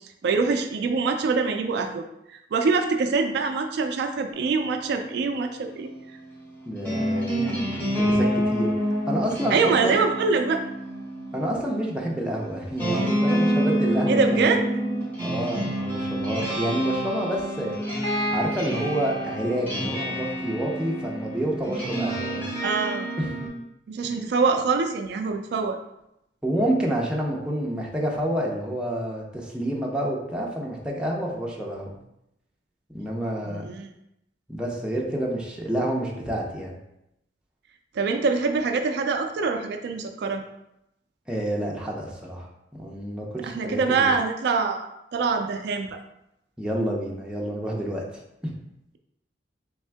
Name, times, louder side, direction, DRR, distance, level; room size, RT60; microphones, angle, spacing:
voice 1, 0.2-2.0 2.3-5.9 9.5-10.6 14.1-14.6 22.6-23.1 23.9-25.8 33.5-33.9 38.0-40.4 43.4-46.0, right 4 dB, 65° right, 5 dB, 0.3 m, -24 dB
sound 1, 4.3-23.5, equal, 10° left, 1.5 m, -28 dB
voice 2, 6.7-10.0 11.3-14.4 15.2-17.7 18.3-22.5 23.2-23.3 26.4-31.9 32.9-33.7 34.5-36.7 41.3-44.1 46.6-48.1 48.4-48.5, right 1 dB, 5° right, -2 dB, 0.6 m, -29 dB
3.6 x 3.5 x 3.4 m, 0.84 s
head